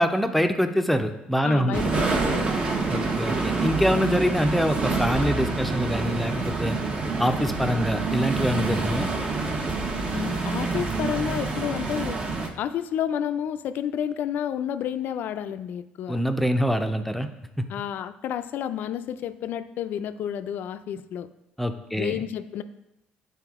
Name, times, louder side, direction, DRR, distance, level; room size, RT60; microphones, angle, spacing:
voice 1, 0.0-1.9 2.9-6.8 7.2-9.1 16.1-17.3 17.6-17.7 21.6-22.2, equal, ahead, 6 dB, 0.6 m, -25 dB
voice 2, 1.4-2.5 10.1-12.2 12.6-16.2 17.7-21.3 22.0-22.6, left 9 dB, 65° left, 12 dB, 0.4 m, -30 dB
sound 1, 1.7-12.5, right 3 dB, 35° right, 0.9 m, -27 dB
9.0 x 4.2 x 3.6 m, 0.87 s
cardioid pair, 90°, 3 cm